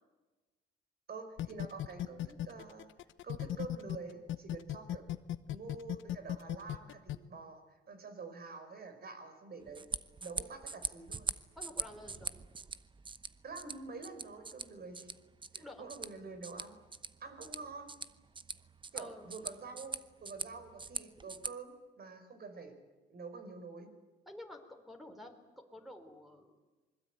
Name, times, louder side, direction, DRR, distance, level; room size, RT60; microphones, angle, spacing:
voice 1, 1.1-2.9 3.2-5.1 5.5-9.8 10.2-11.3 13.4-15.1 15.5-16.8 17.2-17.9 18.9-22.7 23.1-23.9, right 4 dB, 50° right, 7 dB, 5.0 m, -47 dB
sound 1, 1.4-4.0 4.3-7.2, left 12 dB, 75° left, 1.0 m, -36 dB
sound 2, 9.6-21.5, right 4 dB, 25° right, 0.9 m, -43 dB
voice 2, 11.6-12.3 15.6-15.9 18.9-19.3 24.3-26.6, left 1 dB, ahead, 1 dB, 4.0 m, -50 dB
26.0 x 21.0 x 9.2 m, 1.2 s
cardioid pair, 90°, 20 cm